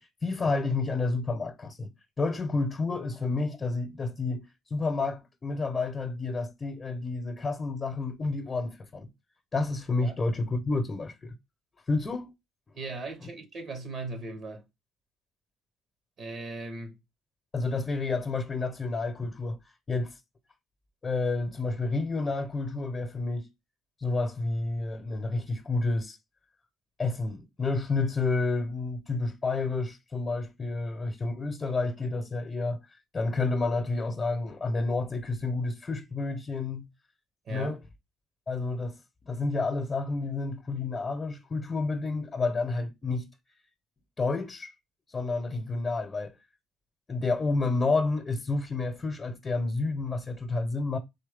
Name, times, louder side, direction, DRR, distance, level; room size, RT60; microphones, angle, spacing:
voice 1, 0.0-1.9 2.2-9.1 9.5-11.3 11.9-12.3 13.2-13.3 17.5-19.6 19.9-20.2 21.0-23.5 24.0-26.2 27.0-36.9 37.5-37.8 38.5-39.0 39.3-43.3 44.2-44.7 45.1-46.3 47.1-51.0, left 3 dB, 35° left, 0.9 m, -30 dB
voice 2, 12.8-14.6 16.2-17.0 37.5-37.8, right 3 dB, 55° right, 1.2 m, -38 dB
4.0 x 3.1 x 3.5 m
hypercardioid pair, 55°, 0 cm